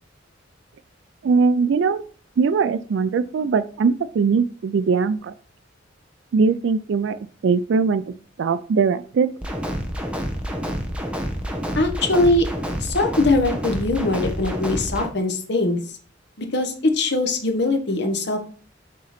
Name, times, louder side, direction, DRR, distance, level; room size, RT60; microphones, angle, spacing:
voice 1, 1.2-2.0 2.4-5.3 6.3-8.0 8.4-9.3, right 5 dB, 65° right, 13 dB, 0.3 m, -20 dB
sound 1, 9.4-15.1, equal, 5° right, 0.9 m, -28 dB
voice 2, 11.8-12.5 12.8-15.8 16.4-18.4, left 2 dB, 60° left, 5 dB, 1.1 m, -21 dB
7.4 x 3.8 x 4.2 m, 0.42 s
head